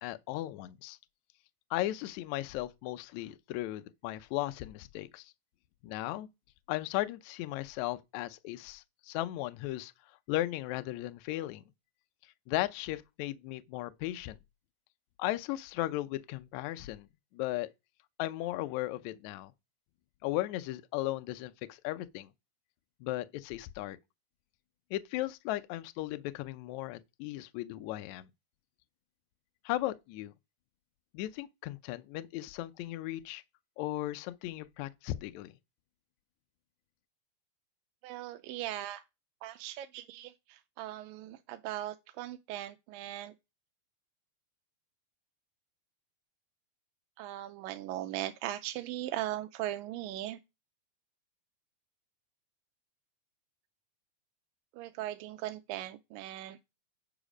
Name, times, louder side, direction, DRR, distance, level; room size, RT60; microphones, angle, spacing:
voice 1, 0.0-1.0 1.7-5.3 5.8-6.3 6.7-9.9 10.3-11.6 12.5-14.4 15.2-17.1 17.3-17.7 18.2-19.5 20.2-22.3 23.0-24.0 24.9-28.3 29.7-30.3 31.1-33.4 33.8-35.5, left 16 dB, 80° left, 1.7 m, -36 dB
voice 2, 38.0-39.0 39.4-43.3 47.2-50.4 54.7-56.6, right 14 dB, 85° right, 2.3 m, -39 dB
10.5 x 4.8 x 5.0 m
omnidirectional pair, 3.9 m